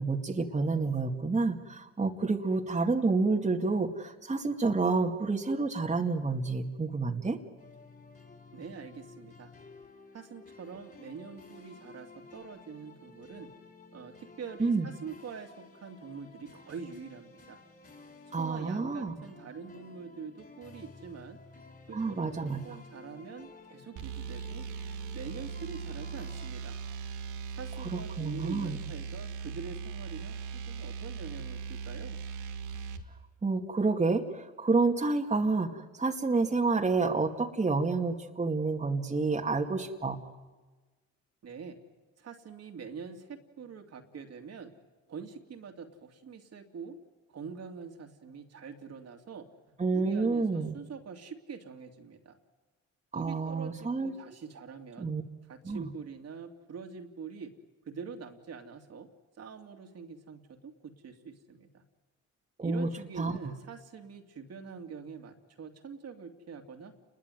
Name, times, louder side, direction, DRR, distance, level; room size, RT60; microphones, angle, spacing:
voice 1, 0.0-7.4 14.6-14.9 18.3-19.1 21.9-22.6 27.9-28.8 33.4-40.2 49.8-50.7 53.1-54.1 55.0-55.2 55.6-55.9 62.6-62.9 63.2-63.4, right 3 dB, 25° right, 2 dB, 2.1 m, -29 dB
sound 1, 7.6-26.5, left 3 dB, 30° left, 5.8 m, -53 dB
voice 2, 8.5-9.5 10.1-13.5 13.9-17.6 18.4-21.4 21.9-24.6 25.1-26.8 27.5-32.2 41.4-41.8 42.2-44.7 45.1-47.0 47.3-49.5 49.9-52.4 53.1-55.1 55.4-57.5 57.9-59.1 59.4-61.8 62.6-66.9, right 6 dB, 55° right, 4 dB, 2.8 m, -44 dB
sound 2, 24.0-33.0, right 6 dB, 90° right, 1.9 m, -39 dB
29.5 x 21.5 x 9.4 m, 1.3 s
cardioid pair, 90°, 30 cm